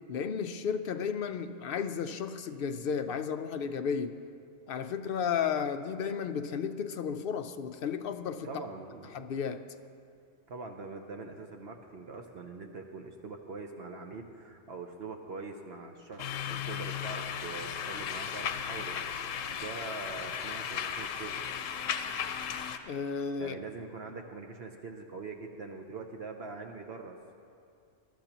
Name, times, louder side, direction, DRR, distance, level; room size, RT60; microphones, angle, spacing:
voice 1, 0.1-4.2 4.7-8.5 9.1-9.6 22.8-23.6, left 6 dB, 60° left, 9 dB, 0.6 m, -33 dB
voice 2, 8.4-9.3 10.5-21.4 23.4-27.2, right 3 dB, 55° right, 4 dB, 1.0 m, -43 dB
sound 1, 16.2-22.8, left 8 dB, 80° left, 1.0 m, -36 dB
20.0 x 13.0 x 2.9 m, 2.4 s
omnidirectional pair, 1.3 m